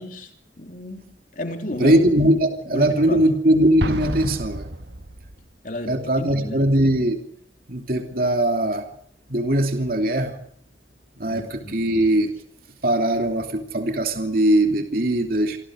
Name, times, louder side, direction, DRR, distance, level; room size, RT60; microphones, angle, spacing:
voice 1, 0.0-2.0 2.6-3.3 5.6-6.7 11.3-11.9, left 1 dB, 45° left, 5 dB, 3.3 m, -33 dB
voice 2, 1.8-4.7 5.9-7.2 7.7-8.9 9.3-10.3 11.2-12.3 12.8-15.6, right 1 dB, 50° right, 4 dB, 2.8 m, -20 dB
Explosion, 3.8-5.5, right 1 dB, 75° right, 1.5 m, -30 dB
27.0 x 26.0 x 5.0 m, 0.66 s
head